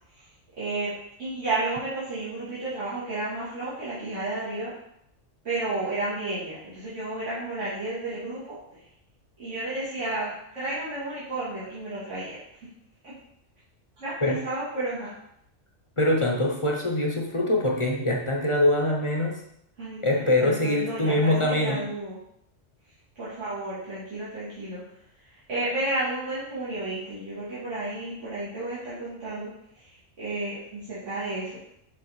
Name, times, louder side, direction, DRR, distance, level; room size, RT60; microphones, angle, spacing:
voice 1, 0.6-0.9 1.2-4.7 5.4-8.8 9.4-12.4 13.0-13.1 14.0-15.1 19.8-22.2 23.2-24.8 25.2-29.5 29.7-31.6, right 2 dB, 65° right, -11 dB, 2.6 m, -32 dB
voice 2, 16.0-19.4 20.0-21.8, left 1 dB, 25° left, 0 dB, 1.0 m, -23 dB
6.7 x 4.1 x 4.9 m, 0.75 s
omnidirectional pair, 1.3 m